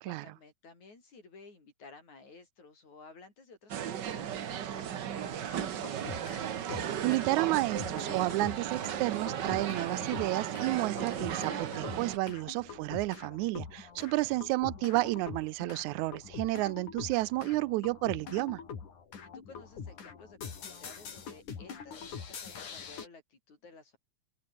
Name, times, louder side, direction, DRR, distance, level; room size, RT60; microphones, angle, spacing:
voice 1, 0.0-6.0 14.0-14.3 19.2-24.0, left 4 dB, 70° left, 8.2 m, -54 dB
sound 1, 3.7-12.2, right 9 dB, 55° right, 1.2 m, -36 dB
sound 2, 5.4-6.4 6.7-23.1, left 6 dB, 90° left, 5.1 m, -45 dB
voice 2, 6.7-18.6, right 20 dB, 85° right, 1.9 m, -31 dB
omnidirectional pair, 3.4 m